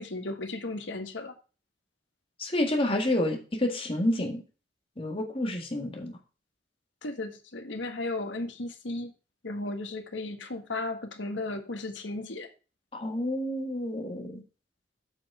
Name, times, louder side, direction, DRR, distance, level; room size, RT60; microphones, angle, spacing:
voice 1, 0.0-1.3 7.0-9.1 9.4-12.5, left 2 dB, 85° left, 1.4 m, -35 dB
voice 2, 2.4-4.4 5.0-6.2 12.9-14.4, left 1 dB, 30° left, 1.8 m, -29 dB
7.2 x 6.4 x 4.8 m
head